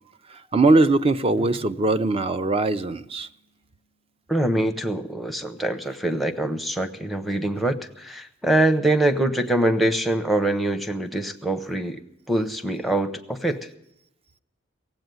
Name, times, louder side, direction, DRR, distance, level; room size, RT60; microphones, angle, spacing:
voice 1, 0.3-3.3, right 2 dB, 30° right, 0.5 m, -21 dB
Drum, 1.4-4.1, equal, 45° right, 3.6 m, -47 dB
voice 2, 4.3-12.0 12.3-13.7, right 1 dB, ahead, 0.7 m, -24 dB
17.0 x 8.0 x 9.2 m
head